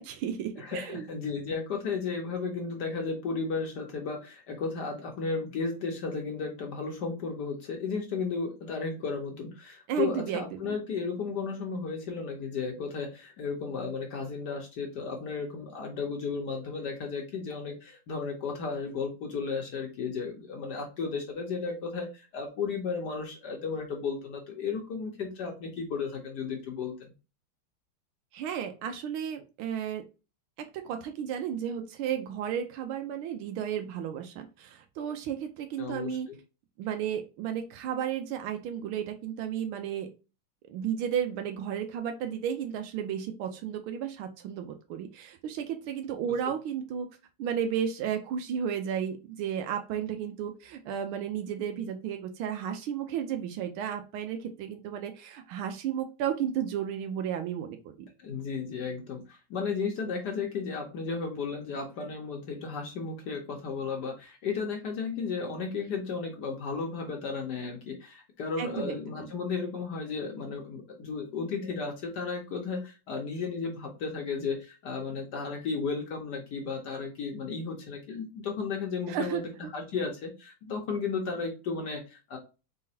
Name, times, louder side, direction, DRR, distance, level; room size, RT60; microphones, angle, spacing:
voice 1, 0.0-1.1 9.9-10.7 28.3-30.0 30.6-36.3 36.8-40.1 40.7-47.1 47.4-58.1 68.6-69.3 79.1-79.4, right 9 dB, 85° right, 6 dB, 1.5 m, -33 dB
voice 2, 0.6-27.1 35.8-36.4 58.2-79.4 79.7-82.4, left 5 dB, 60° left, 2 dB, 1.3 m, -34 dB
4.0 x 3.8 x 2.7 m, 0.30 s
omnidirectional pair, 2.2 m